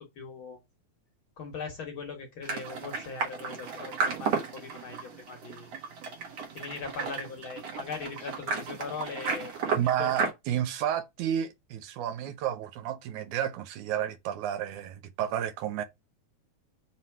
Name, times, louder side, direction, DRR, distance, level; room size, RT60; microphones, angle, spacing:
voice 1, 0.1-0.6 1.4-5.7 6.5-9.5 10.0-10.3, left 5 dB, 55° left, 1.6 m, -40 dB
sound 1, 2.4-10.3, right 5 dB, 60° right, 2.6 m, -33 dB
voice 2, 9.7-15.8, right 10 dB, 80° right, 2.2 m, -31 dB
5.6 x 3.1 x 5.6 m
omnidirectional pair, 3.5 m